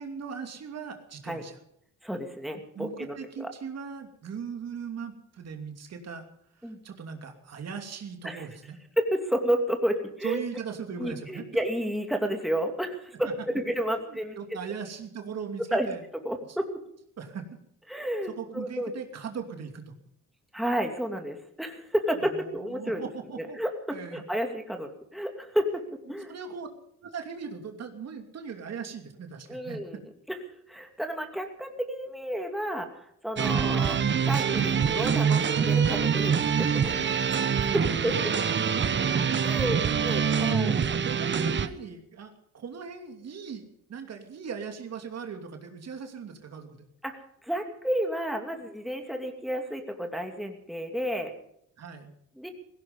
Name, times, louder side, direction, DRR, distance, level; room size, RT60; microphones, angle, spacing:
voice 1, 0.0-1.6 2.7-6.3 6.6-8.8 10.2-11.4 13.9-16.0 17.2-17.4 18.3-19.9 22.2-23.6 23.9-24.2 26.3-26.7 27.0-29.8 33.5-33.7 37.7-38.3 38.6-39.2 39.6-46.8 51.8-52.1, right 6 dB, 55° right, 5 dB, 2.7 m, -39 dB
voice 2, 2.0-3.5 6.6-6.8 8.2-8.5 9.0-10.4 11.0-14.4 15.7-15.9 16.1-16.8 17.9-18.9 20.5-23.1 23.4-25.8 26.1-26.4 29.5-30.0 30.3-30.4 30.7-32.9 33.2-34.0 34.2-37.1 37.6-38.3 39.4-40.7 47.0-51.3 52.4-52.5, equal, ahead, 3 dB, 2.6 m, -31 dB
sound 1, 33.4-41.7, right 7 dB, 40° right, 1.1 m, -25 dB
16.5 x 16.5 x 5.3 m, 0.72 s
cardioid pair, 90°, 30 cm